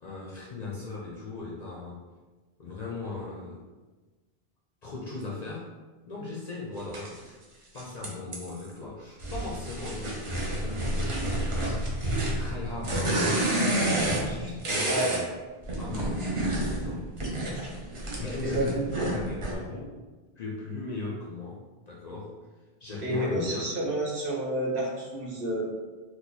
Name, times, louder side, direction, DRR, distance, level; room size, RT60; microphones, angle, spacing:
voice 1, 0.0-2.0 2.6-3.6 4.8-5.7 6.1-7.4 7.7-11.3 11.6-11.9 12.2-13.4 14.2-15.2 15.8-17.1 18.2-19.9 20.4-22.3 22.8-23.7, left 3 dB, 55° left, -4 dB, 0.5 m, -38 dB
sound 1, 6.9-7.1 7.8-8.7 9.2-15.2 15.6-19.5, right 1 dB, 40° right, 0.5 m, -29 dB
voice 2, 18.4-19.1 23.0-25.7, right 1 dB, 60° right, -4 dB, 1.0 m, -29 dB
2.8 x 2.3 x 3.8 m, 1.3 s
omnidirectional pair, 1.1 m